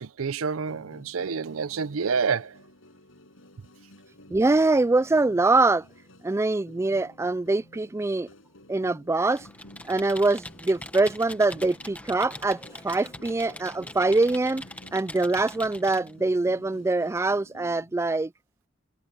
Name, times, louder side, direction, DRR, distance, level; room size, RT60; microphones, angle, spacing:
voice 1, 0.0-2.6, right 5 dB, 85° right, 0.6 m, -28 dB
sound 1, 0.6-18.1, left 1 dB, 70° left, 6.0 m, -53 dB
voice 2, 4.3-5.8 6.2-8.3 8.7-9.5 9.9-14.6 14.9-18.3, right 2 dB, 15° right, 0.3 m, -24 dB
Computer keyboard, 9.3-16.1, left 1 dB, 5° left, 1.2 m, -43 dB
head